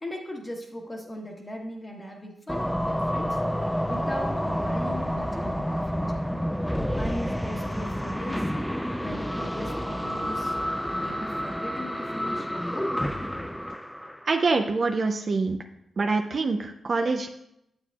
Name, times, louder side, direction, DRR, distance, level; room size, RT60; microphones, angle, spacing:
voice 1, 0.0-3.4 3.8-6.0 7.0-8.4 9.0-10.5 10.9-12.9, equal, 25° left, 0 dB, 1.2 m, -38 dB
Mechanical Shutdown, 2.5-14.5, equal, 5° left, 0.4 m, -29 dB
voice 2, 14.3-15.6 16.0-17.3, right 3 dB, 55° right, 5 dB, 0.5 m, -25 dB
7.3 x 6.9 x 2.3 m, 0.79 s
supercardioid pair, 45°, 0 cm